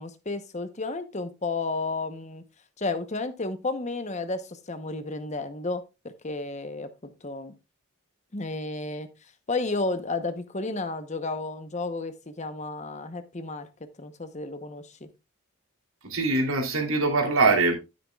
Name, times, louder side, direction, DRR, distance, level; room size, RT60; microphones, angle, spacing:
voice 1, 0.0-2.4 2.8-6.9 7.2-7.6 8.3-9.1 9.5-15.1, left 3 dB, 35° left, 1.0 m, -32 dB
voice 2, 16.0-17.8, right 3 dB, 80° right, 3.1 m, -23 dB
11.5 x 9.5 x 2.4 m
head